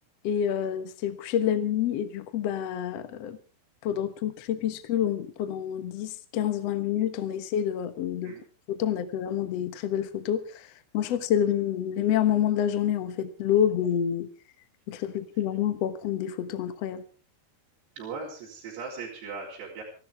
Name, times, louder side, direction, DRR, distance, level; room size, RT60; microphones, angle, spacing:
voice 1, 0.2-3.4 3.8-8.3 8.7-14.3 14.9-17.0, left 10 dB, 65° left, 1.6 m, -28 dB
voice 2, 18.0-19.8, right 4 dB, 80° right, 5.8 m, -38 dB
29.0 x 12.5 x 3.5 m
omnidirectional pair, 4.8 m